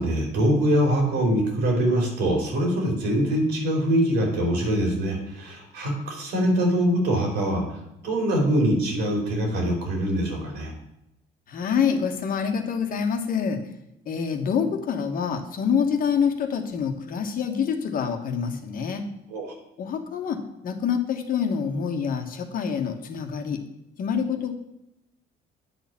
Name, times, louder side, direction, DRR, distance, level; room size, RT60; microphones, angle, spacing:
voice 1, 0.0-7.8 8.0-10.7 19.3-19.5, equal, 85° right, 1 dB, 3.4 m, -23 dB
voice 2, 11.5-13.6 14.1-19.0 19.8-20.4 20.6-23.6 24.0-24.5, left 7 dB, 55° left, 5 dB, 1.4 m, -26 dB
9.1 x 4.3 x 7.1 m, 0.86 s
cardioid pair, 110°, 17 cm